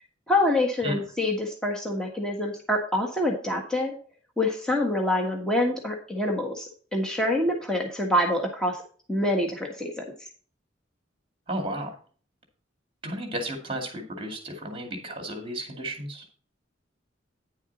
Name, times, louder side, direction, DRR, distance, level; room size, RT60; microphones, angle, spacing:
voice 1, 0.3-3.9 4.4-8.8 9.1-10.1, left 1 dB, 5° left, 0 dB, 1.5 m, -26 dB
voice 2, 11.5-12.0 13.0-16.3, right 1 dB, 30° right, 3 dB, 2.3 m, -33 dB
10.0 x 7.2 x 4.1 m, 0.43 s
head